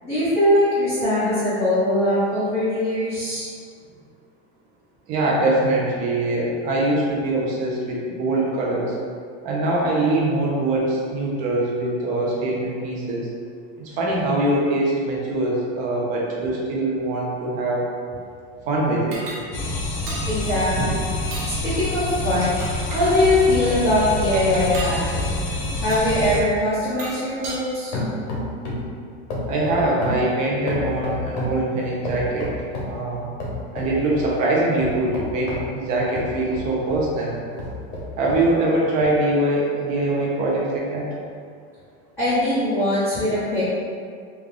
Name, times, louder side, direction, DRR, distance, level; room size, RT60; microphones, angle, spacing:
voice 1, 0.0-3.5 20.3-21.1 21.4-22.6 22.9-25.3 25.8-28.0 42.2-43.6, left 1 dB, 10° left, -17 dB, 0.9 m, -21 dB
voice 2, 5.1-9.0 9.4-13.3 13.8-17.8 18.7-19.2 29.5-32.5 32.8-33.3 33.7-37.4 38.2-41.1, right 2 dB, 25° right, -4 dB, 0.4 m, -23 dB
sound 1, 19.1-19.4 20.1-20.3 21.2-21.5 22.2-23.1 24.6-25.0 25.9-26.1 26.8-27.6, right 1 dB, 65° right, 1.0 m, -34 dB
sound 2, 19.5-26.4, left 2 dB, 55° left, 0.6 m, -27 dB
sound 3, 24.3-27.7 27.9-28.9 29.3-31.6 32.0-33.0 33.4-34.3 34.8-37.1 37.5-38.5 39.0-39.1, left 2 dB, 85° left, 1.0 m, -31 dB
3.7 x 2.2 x 3.3 m, 2.2 s
supercardioid pair, 170°, 33 cm